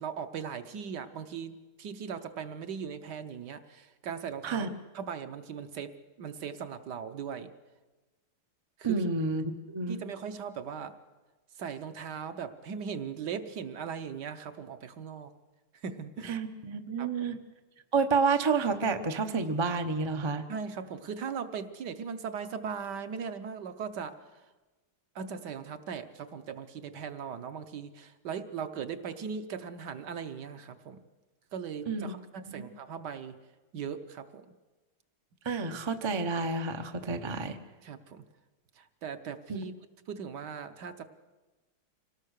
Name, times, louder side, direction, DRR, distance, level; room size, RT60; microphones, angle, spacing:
voice 1, 0.0-4.7 4.9-7.5 8.8-9.0 9.9-11.0 11.6-15.3 15.8-16.4 17.0-17.4 20.5-24.2 25.1-31.0 31.5-33.4 33.7-34.4 37.8-38.2 38.8-39.7 40.1-41.0, right 6 dB, 60° right, 9 dB, 1.3 m, -39 dB
voice 2, 8.8-10.0 16.2-17.4 17.9-20.4 31.9-32.2 32.5-32.6 35.4-37.6 39.5-39.6, right 4 dB, 35° right, 6 dB, 0.4 m, -29 dB
25.5 x 18.0 x 6.5 m, 1.2 s
omnidirectional pair, 2.4 m